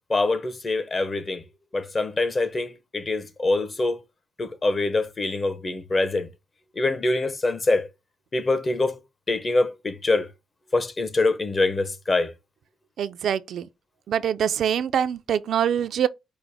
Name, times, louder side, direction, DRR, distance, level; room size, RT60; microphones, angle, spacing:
voice 1, 0.1-1.4 1.7-4.0 4.4-6.3 6.8-7.9 8.3-9.0 9.3-10.3 10.7-12.3, left 2 dB, 35° left, 0.8 m, -24 dB
voice 2, 13.0-13.7 14.1-16.1, right 9 dB, 70° right, 0.4 m, -24 dB
5.0 x 2.1 x 4.7 m
cardioid pair, 80°, 0 cm